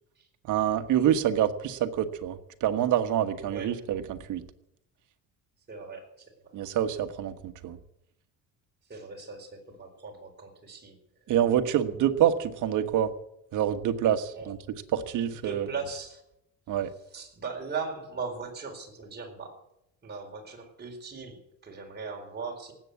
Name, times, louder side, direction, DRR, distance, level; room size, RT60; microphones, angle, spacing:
voice 1, 0.5-4.4 6.5-7.8 11.3-13.1 13.5-14.6 14.9-15.7 16.7-16.9, right 10 dB, 60° right, 9 dB, 1.4 m, -26 dB
voice 2, 3.4-3.8 5.7-6.5 8.9-11.0 14.3-14.5 15.4-16.2 17.1-19.6 20.0-22.7, right 5 dB, 30° right, 1 dB, 4.4 m, -39 dB
18.5 x 8.5 x 8.2 m, 0.82 s
cardioid pair, 120°, 34 cm